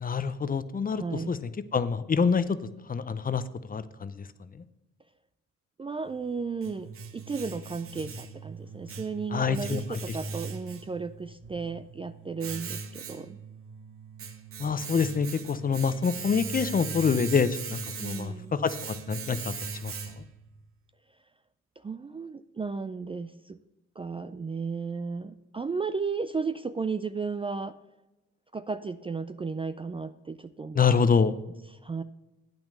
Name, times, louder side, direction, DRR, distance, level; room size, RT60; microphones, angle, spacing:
voice 1, 0.0-1.4 1.7-2.6 2.9-3.4 3.7-4.3 9.3-10.0 14.6-19.5 19.8-20.0 30.8-31.4, left 6 dB, 30° left, 14 dB, 0.6 m, -26 dB
voice 2, 1.0-1.3 5.8-13.4 18.0-18.6 21.8-23.6 24.0-27.7 28.5-30.8 31.7-32.0, right 4 dB, 20° right, 12 dB, 0.4 m, -34 dB
Domestic sounds home sounds, 6.1-20.5, right 5 dB, 45° right, 1.0 m, -40 dB
8.7 x 6.1 x 6.4 m, 1.0 s
cardioid pair, 90°, 30 cm